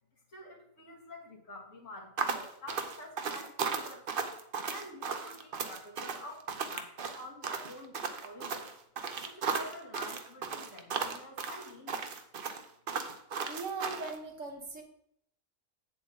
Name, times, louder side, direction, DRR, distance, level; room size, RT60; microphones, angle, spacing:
voice 1, 0.3-4.1 4.7-8.7 9.2-12.1, left 1 dB, 60° left, -3 dB, 2.5 m, -48 dB
sound 1, 2.2-14.2, right 5 dB, 50° right, 0.8 m, -36 dB
voice 2, 13.5-14.8, right 4 dB, 65° right, 3 dB, 1.7 m, -39 dB
8.1 x 7.6 x 3.9 m, 0.70 s
omnidirectional pair, 1.4 m